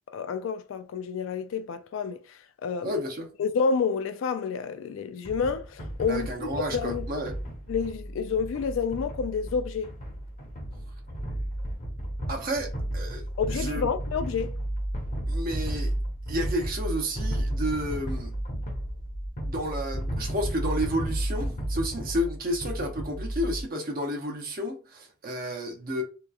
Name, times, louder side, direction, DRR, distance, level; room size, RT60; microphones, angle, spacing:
voice 1, 0.1-2.9 3.4-7.1 7.7-9.9 13.4-14.5, left 5 dB, 70° left, 0.3 m, -29 dB
voice 2, 2.8-3.3 6.1-7.4 12.3-13.2 13.5-13.8 15.3-15.9 16.3-18.3 19.4-26.0, equal, 45° right, 0.7 m, -31 dB
sound 1, 5.2-23.6, right 1 dB, 40° left, 0.7 m, -33 dB
2.9 x 2.2 x 2.3 m
head